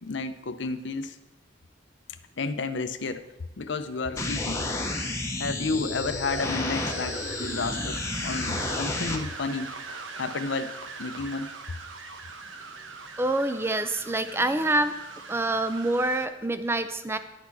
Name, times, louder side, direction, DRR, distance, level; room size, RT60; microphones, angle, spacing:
voice 1, 0.0-1.2 2.4-3.2 3.6-4.6 5.4-9.7 10.2-10.7 11.0-11.5, left 3 dB, 65° left, 10 dB, 0.6 m, -31 dB
sound 1, 4.2-9.2, left 2 dB, 15° left, 1.0 m, -31 dB
sound 2, 6.2-16.3, right 4 dB, 90° right, 1.0 m, -41 dB
voice 2, 13.2-14.9 15.3-17.2, right 2 dB, 10° right, 10 dB, 0.5 m, -26 dB
11.0 x 8.4 x 4.7 m, 1.0 s
head